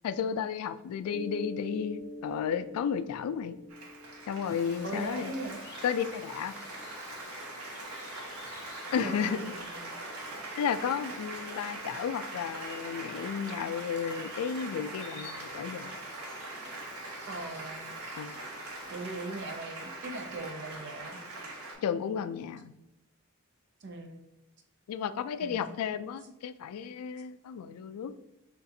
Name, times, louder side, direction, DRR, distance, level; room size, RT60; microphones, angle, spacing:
voice 1, 0.0-3.6 4.3-5.3 5.8-6.5 8.9-9.5 10.6-15.9 18.1-18.4 21.8-22.7 24.9-28.1, left 7 dB, 85° left, 15 dB, 0.3 m, -33 dB
Mallet percussion, 1.0-5.5, equal, 10° right, 0.9 m, -45 dB
Applause, 3.7-21.7, right 2 dB, 90° right, 1.1 m, -42 dB
sound 1, 4.4-19.6, left 4 dB, 50° left, 0.7 m, -52 dB
voice 2, 4.8-5.6 7.0-7.1 9.0-9.8 10.1-10.2 17.3-18.0 18.9-21.2 23.8-24.2 25.4-25.6, right 2 dB, 55° right, 4 dB, 0.6 m, -40 dB
6.5 x 2.5 x 2.6 m, 0.91 s
head